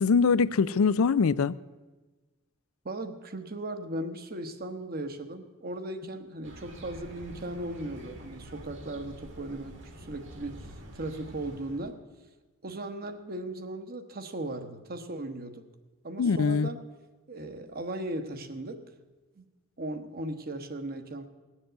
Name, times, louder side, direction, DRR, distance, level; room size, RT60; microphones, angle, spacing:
voice 1, 0.0-1.6 16.2-16.7, left 5 dB, 90° left, 0.4 m, -23 dB
voice 2, 2.8-10.6 10.9-12.0 12.6-15.6 16.0-16.8 17.3-18.8 19.4-19.5 19.8-21.3, right 1 dB, 45° right, 1.1 m, -37 dB
sound 1, 6.4-11.9, equal, 65° right, 2.1 m, -47 dB
18.5 x 7.4 x 7.9 m
head